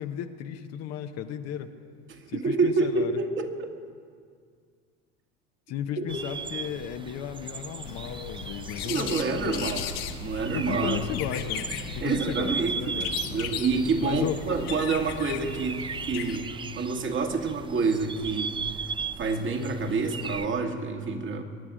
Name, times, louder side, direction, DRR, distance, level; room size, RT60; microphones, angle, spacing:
voice 1, 0.0-1.7 2.3-3.1 5.7-9.7 10.5-13.4 14.0-14.4, left 9 dB, 55° left, 6 dB, 1.1 m, -34 dB
voice 2, 2.1-3.7 6.0-6.1 8.9-9.9 10.2-11.0 12.0-13.0 13.3-15.8 16.1-16.5 16.8-18.6 19.2-21.4, right 4 dB, 40° right, 3 dB, 2.2 m, -27 dB
sound 1, 6.1-20.5, right 5 dB, 15° right, 0.5 m, -38 dB
sound 2, 7.8-16.4, left 7 dB, 80° left, 1.4 m, -36 dB
23.5 x 9.9 x 5.0 m, 2.1 s
hypercardioid pair, 80°, 31 cm